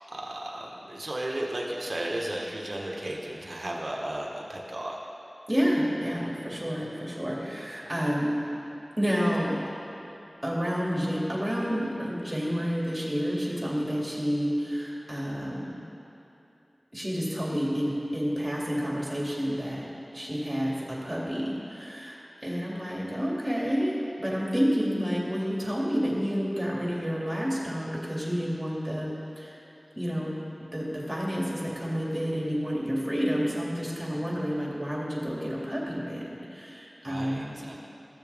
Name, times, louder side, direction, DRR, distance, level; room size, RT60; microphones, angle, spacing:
voice 1, 0.1-5.0 37.0-37.8, right 1 dB, 60° right, -2 dB, 1.3 m, -34 dB
voice 2, 5.5-8.4 9.0-9.6 10.4-15.8 16.9-19.8 20.1-23.9 24.2-29.6 30.0-30.3 30.7-37.7, equal, 20° right, -5 dB, 2.5 m, -29 dB
14.5 x 7.0 x 3.6 m, 2.9 s
wide cardioid pair, 50°, 0 cm